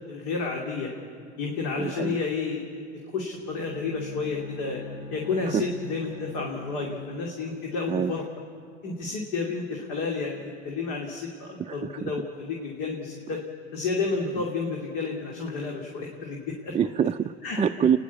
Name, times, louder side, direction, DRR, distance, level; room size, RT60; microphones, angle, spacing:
voice 1, 0.1-0.9 1.4-2.8 3.1-4.8 5.1-8.2 8.8-13.4 13.7-16.7 17.4-17.6, left 4 dB, 65° left, 0 dB, 2.8 m, -31 dB
voice 2, 1.7-2.2 5.5-5.6 6.8-6.9 7.9-8.1 11.6-12.1 16.7-18.0, right 8 dB, 20° right, 5 dB, 0.4 m, -26 dB
Bowed string instrument, 3.4-7.5, left 2 dB, 50° left, 4.2 m, -42 dB
30.0 x 11.0 x 8.4 m, 2.4 s
supercardioid pair, 95°, 34 cm